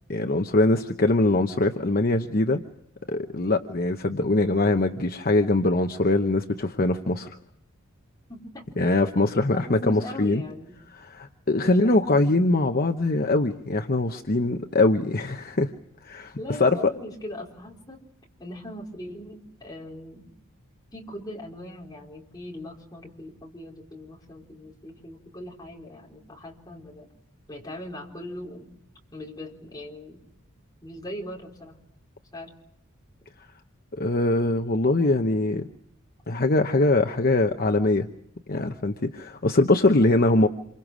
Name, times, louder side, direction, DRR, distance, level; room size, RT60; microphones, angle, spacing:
voice 1, 0.1-2.6 3.1-7.4 8.8-10.4 10.9-15.7 16.0-16.8 34.0-35.6 36.3-38.1 38.5-40.5, left 2 dB, 45° left, 6 dB, 0.9 m, -22 dB
voice 2, 8.3-8.6 9.5-10.7 11.6-12.4 16.4-18.0 18.4-20.3 20.9-27.1 27.5-28.7 29.1-30.2 30.8-31.8 32.3-32.5, left 1 dB, 20° left, -1 dB, 4.2 m, -40 dB
27.5 x 24.5 x 6.3 m, 0.76 s
head